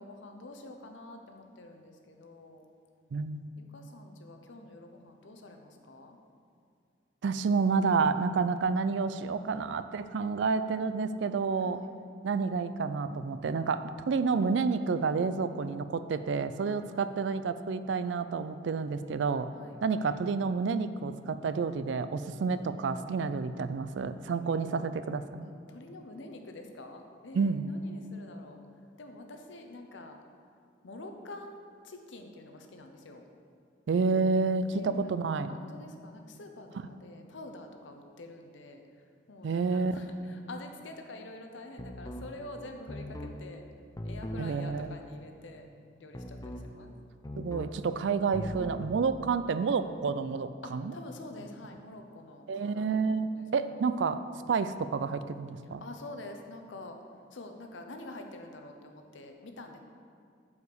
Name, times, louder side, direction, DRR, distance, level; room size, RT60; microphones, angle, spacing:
voice 1, 0.0-2.6 3.6-6.2 11.6-11.9 15.1-15.3 16.6-17.1 19.5-19.8 20.3-20.4 24.4-24.9 25.7-28.6 29.0-30.2 30.8-33.2 34.7-35.1 35.5-38.8 39.3-43.6 44.0-45.7 46.0-46.9 50.6-53.9 55.8-57.0 57.3-59.8, left 2 dB, 85° left, 4 dB, 0.8 m, -47 dB
voice 2, 3.1-3.5 7.2-11.8 12.2-19.5 19.8-25.5 27.3-27.7 33.9-35.5 39.4-39.9 44.4-45.0 47.4-50.9 52.5-54.2 54.5-55.8, right 4 dB, 70° right, 12 dB, 0.4 m, -29 dB
sound 1, 41.8-42.3 42.9-43.3 44.0-44.5 46.1-46.7 47.2-47.7 48.3-48.8, left 1 dB, 20° left, 0.5 m, -39 dB
8.5 x 4.8 x 6.8 m, 2.2 s
head